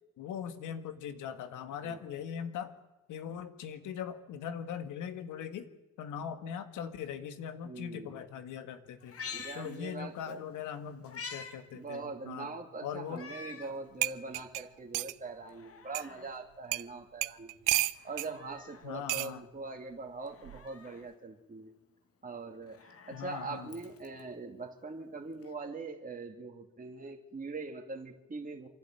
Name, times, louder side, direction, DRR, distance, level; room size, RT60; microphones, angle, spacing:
voice 1, 0.2-2.7 3.1-5.7 6.0-9.2 9.5-12.5 12.8-13.3 18.8-19.5 23.1-23.7, left 8 dB, 85° left, 9 dB, 1.8 m, -40 dB
voice 2, 7.6-8.2 9.3-10.4 11.7-17.6 18.0-21.7 22.2-28.7, right 3 dB, 30° right, 2 dB, 2.7 m, -42 dB
Meow, 9.0-10.3 10.7-11.6 11.9-12.0 13.1-13.8 14.3-14.4 15.4-16.4 17.9-18.9 20.2-21.1 22.5-24.2 25.4-25.5, left 5 dB, 50° left, 2.3 m, -47 dB
sound 1, 13.6-13.7 14.0-15.2 15.9-16.1 16.7-16.9 17.2-18.3 19.1-19.3 20.4-20.7, right 18 dB, 90° right, 0.6 m, -32 dB
26.5 x 11.5 x 9.3 m, 1.1 s
cardioid pair, 90°, 30 cm